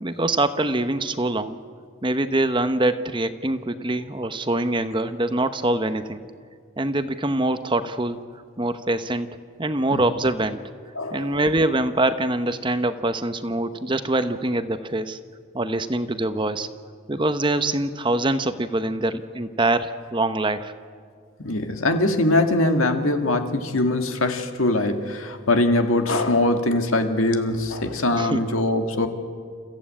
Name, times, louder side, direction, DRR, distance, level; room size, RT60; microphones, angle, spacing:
voice 1, 0.0-1.6 2.0-6.2 6.8-8.2 8.6-9.3 9.6-10.6 11.1-15.2 15.5-16.7 17.1-20.7 28.1-28.4, right 2 dB, 25° right, 10 dB, 0.8 m, -24 dB
voice 2, 11.0-11.4 21.4-29.1, left 2 dB, 85° left, 6 dB, 2.0 m, -22 dB
29.5 x 15.0 x 8.7 m, 2.1 s
head